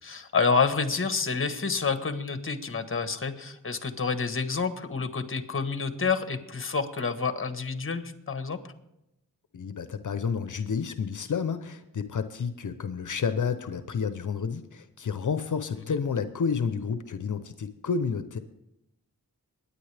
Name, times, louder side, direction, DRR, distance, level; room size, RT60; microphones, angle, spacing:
voice 1, 0.0-8.6 15.9-16.0, left 5 dB, 35° left, 9 dB, 1.3 m, -28 dB
voice 2, 9.5-18.4, left 6 dB, 60° left, 11 dB, 0.8 m, -30 dB
22.0 x 9.9 x 3.4 m, 0.87 s
cardioid pair, 65°, 35 cm